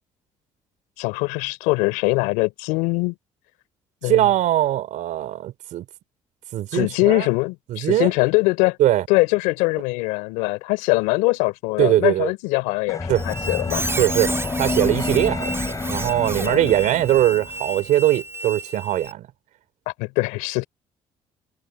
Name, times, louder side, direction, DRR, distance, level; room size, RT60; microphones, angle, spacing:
voice 1, 1.0-3.1 4.0-4.3 6.7-8.8 9.1-13.9 16.4-16.7 20.0-20.7, left 25 dB, 90° left, 4.2 m, -22 dB
voice 2, 4.0-5.9 6.5-7.3 7.7-8.1 8.8-9.1 11.8-12.3 13.1-13.2 14.0-19.3, right 13 dB, 75° right, 4.6 m, -21 dB
sound 1, 12.9-17.5, left 3 dB, 25° left, 5.2 m, -28 dB
Squeak, 13.1-19.1, right 2 dB, 20° right, 3.8 m, -32 dB
supercardioid pair, 60°, 13 cm